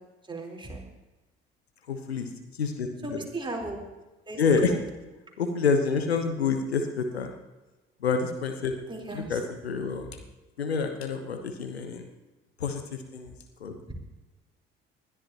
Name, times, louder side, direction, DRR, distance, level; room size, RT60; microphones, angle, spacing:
voice 1, 0.3-0.8 3.0-3.8 4.3-4.8 8.9-9.4 13.9-14.0, right 2 dB, 15° right, -1 dB, 4.1 m, -36 dB
voice 2, 1.9-2.3 2.6-3.2 4.4-4.7 5.4-7.3 8.0-8.7 9.1-10.1 10.6-12.0 12.6-13.3 13.6-13.8, left 5 dB, 85° left, 6 dB, 1.2 m, -28 dB
20.5 x 12.5 x 3.0 m, 1.1 s
figure-of-eight pair, 50°, 31 cm